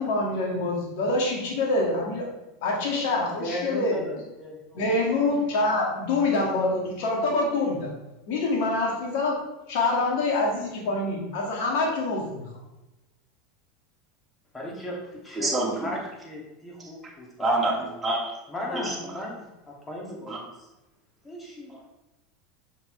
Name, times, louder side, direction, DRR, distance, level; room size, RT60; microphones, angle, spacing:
voice 1, 0.0-2.3 2.6-4.0 4.7-7.9 8.3-9.4 9.7-12.5, left 2 dB, 65° left, -1 dB, 2.5 m, -25 dB
voice 2, 3.4-5.2 14.5-17.6 18.5-20.7 21.2-21.9, left 1 dB, 20° left, -2 dB, 2.8 m, -37 dB
voice 3, 15.4-15.9 16.8-16.9 17.4-18.3 18.7-19.1 20.3-20.4 21.7-21.8, right 2 dB, 15° right, -3 dB, 2.6 m, -27 dB
7.2 x 6.2 x 3.5 m, 0.99 s
hypercardioid pair, 90°, 0 cm